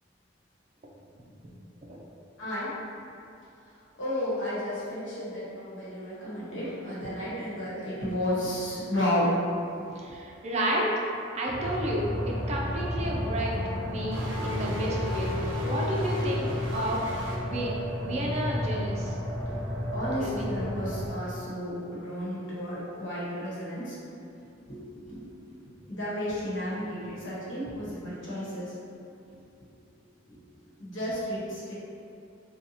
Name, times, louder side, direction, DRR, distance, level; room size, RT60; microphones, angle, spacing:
voice 1, 2.4-2.7 4.0-9.3 18.8-18.9 19.9-24.0 24.7-25.3 25.9-28.7 29.3-29.4 30.3-30.4 30.8-31.7, left 1 dB, 80° left, -9 dB, 1.2 m, -32 dB
voice 2, 10.0-10.9 11.3-15.4 15.6-17.7 18.0-19.1 20.2-20.5, equal, 35° right, -2 dB, 0.4 m, -31 dB
sound 1, 11.5-21.1, equal, 20° left, 0.6 m, -32 dB
sound 2, 14.1-17.4, left 2 dB, 85° right, 0.5 m, -36 dB
2.7 x 2.3 x 4.0 m, 2.6 s
head